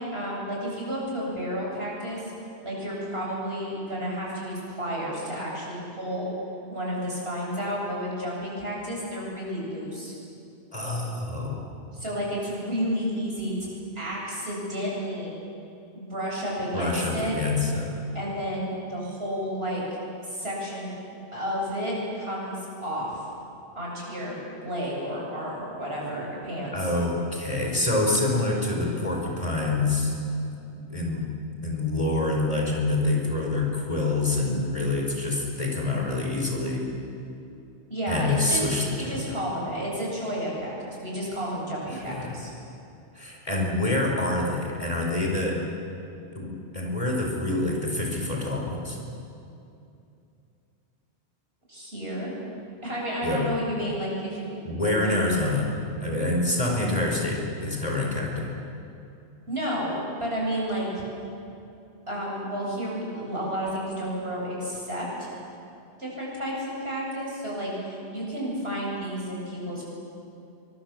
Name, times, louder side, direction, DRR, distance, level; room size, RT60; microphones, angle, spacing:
voice 1, 0.1-2.2 2.6-6.3 6.7-10.1 11.9-13.5 13.9-15.3 15.9-17.4 18.1-19.8 20.2-20.9 21.3-23.2 23.7-26.9 37.9-42.5 51.7-52.3 52.8-54.5 54.8-55.4 59.5-60.9 62.1-65.3 66.0-69.8, equal, 60° right, -4 dB, 8.3 m, -31 dB
voice 2, 10.7-11.7 16.7-17.9 26.7-30.2 30.9-31.2 31.6-36.9 38.1-39.2 41.9-42.4 43.1-45.6 46.3-49.0 53.2-53.4 54.6-58.5, left 2 dB, 30° left, -1 dB, 4.6 m, -26 dB
27.0 x 25.0 x 7.5 m, 2.7 s
omnidirectional pair, 1.2 m